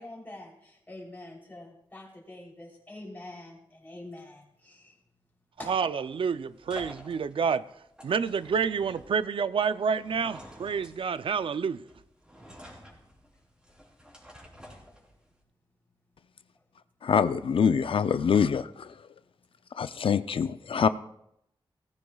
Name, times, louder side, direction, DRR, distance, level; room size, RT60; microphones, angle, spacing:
voice 1, 0.0-5.0 5.6-5.7, left 1 dB, 20° left, 3.4 m, -45 dB
sound 1, 5.6-15.4, equal, 10° right, 3.7 m, -50 dB
voice 2, 5.7-7.6 8.0-11.9, right 6 dB, 75° right, 0.5 m, -28 dB
voice 3, 17.0-19.0 19.8-20.9, left 6 dB, 80° left, 0.5 m, -25 dB
17.5 x 14.5 x 2.4 m
wide cardioid pair, 135°, 9 cm